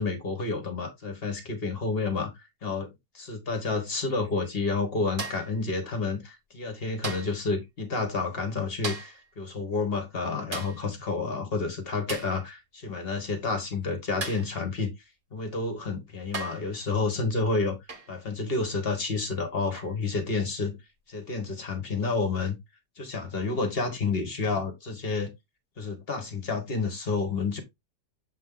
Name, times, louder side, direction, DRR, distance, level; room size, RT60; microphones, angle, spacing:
voice 1, 0.0-2.9 3.3-14.9 15.3-17.8 18.1-20.8 21.1-22.6 23.0-25.3 25.8-27.6, left 4 dB, 35° left, 1.6 m, -30 dB
sound 1, 5.2-5.6 7.0-7.4 8.8-9.2 10.5-10.8 12.1-12.4 14.2-14.6 15.6-15.7 16.3-16.7 17.9-18.1 19.8-20.0, right 3 dB, 30° right, 1.3 m, -36 dB
7.6 x 3.3 x 3.8 m
omnidirectional pair, 1.8 m